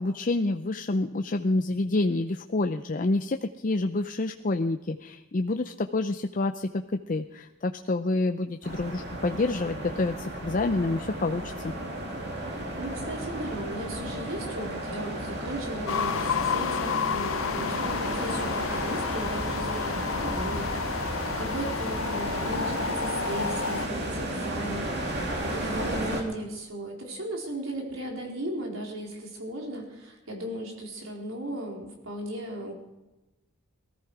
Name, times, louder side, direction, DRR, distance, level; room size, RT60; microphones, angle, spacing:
voice 1, 0.0-11.7, left 2 dB, 40° left, 6 dB, 0.5 m, -28 dB
sound 1, 8.6-26.2, right 1 dB, 55° right, 2.8 m, -33 dB
voice 2, 12.4-32.7, right 1 dB, 85° right, 0 dB, 4.2 m, -36 dB
sound 2, 15.9-23.9, left 6 dB, 80° left, 0.6 m, -31 dB
19.5 x 14.0 x 4.9 m, 1.0 s
head